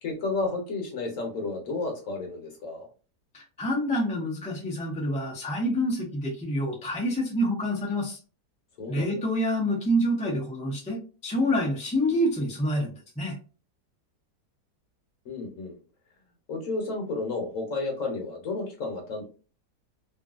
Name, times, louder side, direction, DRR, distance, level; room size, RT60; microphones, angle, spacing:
voice 1, 0.0-2.9 8.8-9.1 15.2-15.8 16.5-19.2, left 3 dB, 55° left, 1 dB, 1.2 m, -32 dB
voice 2, 3.3-8.2 8.9-13.4, equal, 10° left, -3 dB, 0.3 m, -27 dB
2.9 x 2.6 x 2.4 m, 0.36 s
omnidirectional pair, 1.8 m